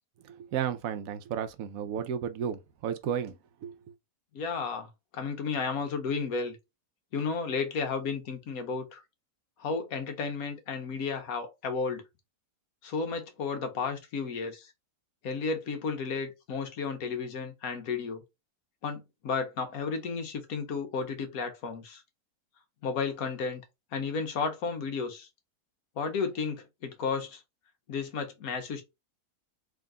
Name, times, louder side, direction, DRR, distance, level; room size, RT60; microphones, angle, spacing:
voice 1, 0.2-3.7, right 8 dB, 70° right, 1.0 m, -33 dB
voice 2, 4.3-6.6 7.1-9.0 9.6-12.0 12.8-14.7 15.2-18.2 18.8-22.0 22.8-23.6 23.9-25.3 26.0-27.4 27.9-28.8, left 5 dB, 70° left, 1.3 m, -33 dB
3.7 x 2.7 x 3.6 m
omnidirectional pair, 1.6 m